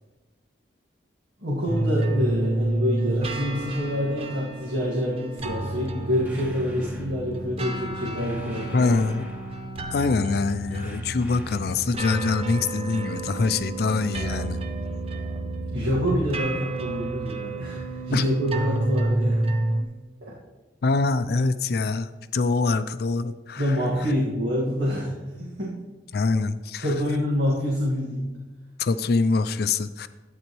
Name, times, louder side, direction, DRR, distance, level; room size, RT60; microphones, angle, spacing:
voice 1, 1.4-8.9 15.7-19.5 20.2-20.4 23.6-25.8 26.8-28.3, equal, 85° right, -5 dB, 1.8 m, -27 dB
sound 1, 1.7-19.8, right 2 dB, 35° right, 0.6 m, -30 dB
sound 2, 6.2-7.1 8.2-9.8 10.8-11.8, equal, 10° right, 1.0 m, -48 dB
voice 2, 8.7-9.2 9.9-14.6 18.1-18.2 20.8-23.8 26.1-26.9 28.8-30.1, left 3 dB, 60° left, 13 dB, 0.4 m, -24 dB
11.5 x 9.0 x 3.1 m, 1.2 s
head